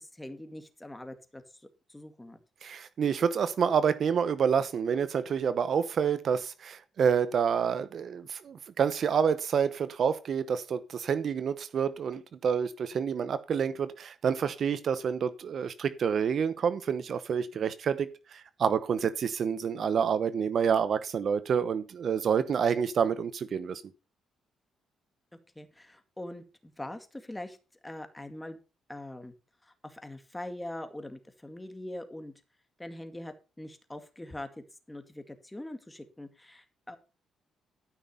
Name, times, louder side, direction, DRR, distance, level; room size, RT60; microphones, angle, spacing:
voice 1, 0.0-2.4 25.6-27.6 27.8-28.6 28.9-29.3 29.6-32.3 32.8-34.5 34.9-37.0, left 1 dB, 10° left, 2.1 m, -43 dB
voice 2, 2.6-23.8, right 7 dB, 55° right, 0.8 m, -28 dB
13.0 x 6.1 x 5.4 m
cardioid pair, 90°, 0 cm